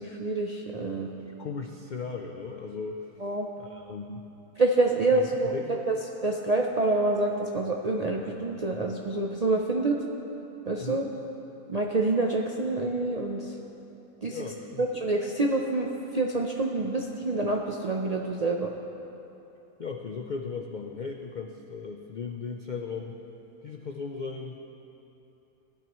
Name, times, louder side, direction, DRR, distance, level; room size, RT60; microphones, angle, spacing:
voice 1, 0.0-1.1 3.2-3.5 4.6-5.5 5.9-6.0 6.2-10.0 10.7-11.1 11.7-13.5 14.2-14.4 14.8-15.9 16.1-18.7, right 2 dB, 55° right, 0 dB, 0.4 m, -27 dB
voice 2, 1.2-3.1 3.6-4.3 5.1-5.2 5.5-5.8 10.8-11.1 14.3-14.9 19.8-23.2 23.6-24.6, left 5 dB, 80° left, 3 dB, 0.4 m, -37 dB
17.5 x 12.0 x 3.1 m, 2.9 s
omnidirectional pair, 1.6 m